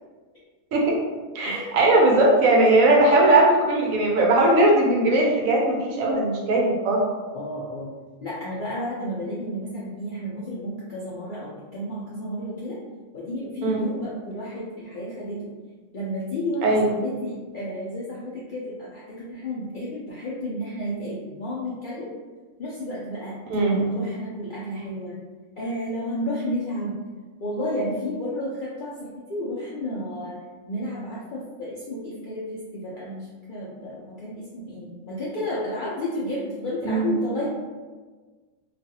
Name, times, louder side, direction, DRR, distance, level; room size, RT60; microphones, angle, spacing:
voice 1, 1.3-7.0 13.6-13.9 16.6-16.9 23.5-24.0 36.8-37.1, right 2 dB, 75° right, -1 dB, 1.0 m, -19 dB
voice 2, 7.3-7.9 8.2-12.8 13.1-15.4 15.9-22.1 22.6-23.4 23.8-25.1 25.6-27.0 27.4-30.4 30.7-37.5, equal, 80° left, -8 dB, 0.4 m, -32 dB
2.4 x 2.4 x 2.7 m, 1.4 s
omnidirectional pair, 1.5 m